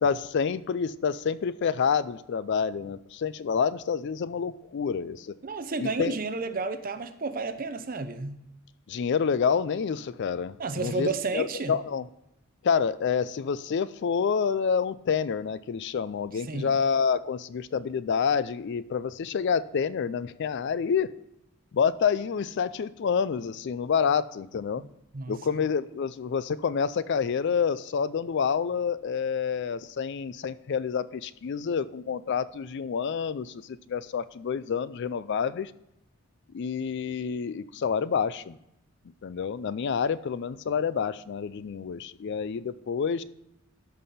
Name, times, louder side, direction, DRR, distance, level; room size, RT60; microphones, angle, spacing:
voice 1, 0.0-5.3 5.8-6.2 8.9-12.1 12.6-21.1 21.7-24.8 25.3-35.7 36.5-38.6 39.2-43.2, left 6 dB, 55° left, 16 dB, 0.4 m, -28 dB
voice 2, 5.4-8.4 10.6-11.8 16.4-16.8 24.8-24.9 25.1-25.4, right 3 dB, 40° right, 10 dB, 0.7 m, -31 dB
13.0 x 5.5 x 4.2 m, 0.83 s
head